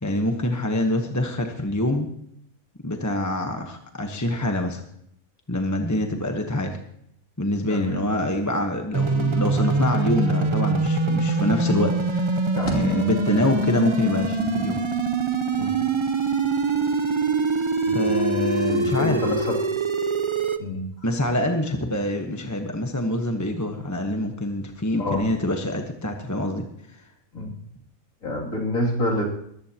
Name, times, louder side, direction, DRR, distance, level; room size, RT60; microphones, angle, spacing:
voice 1, 0.0-2.1 2.8-4.8 5.5-6.8 7.4-12.4 12.7-14.8 17.9-19.2 21.0-26.6, left 1 dB, 15° left, 4 dB, 1.1 m, -25 dB
sound 1, 8.9-20.6, right 3 dB, 30° right, 0.6 m, -24 dB
voice 2, 12.5-13.0 15.6-15.8 17.9-18.0 18.7-19.6 20.6-20.8 25.0-25.2 27.3-27.5 28.2-29.2, left 1 dB, 70° left, -2 dB, 3.3 m, -27 dB
20.5 x 14.5 x 2.9 m, 0.73 s
omnidirectional pair, 1.5 m